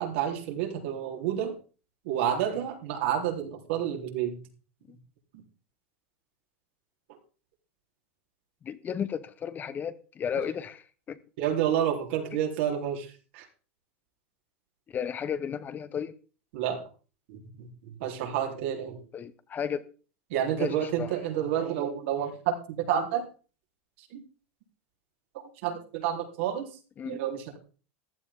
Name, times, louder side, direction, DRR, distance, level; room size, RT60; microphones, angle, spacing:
voice 1, 0.0-1.5 2.0-4.4 5.3-5.4 11.4-13.5 16.5-16.8 17.3-19.0 20.3-23.2 24.0-24.2 25.3-26.7 27.0-27.6, right 9 dB, 70° right, 4.1 m, -30 dB
voice 2, 8.6-11.2 14.9-16.1 19.1-19.9 20.6-21.1 27.0-27.2, left 7 dB, 30° left, 1.1 m, -34 dB
15.0 x 12.0 x 3.8 m
supercardioid pair, 120°, 7 cm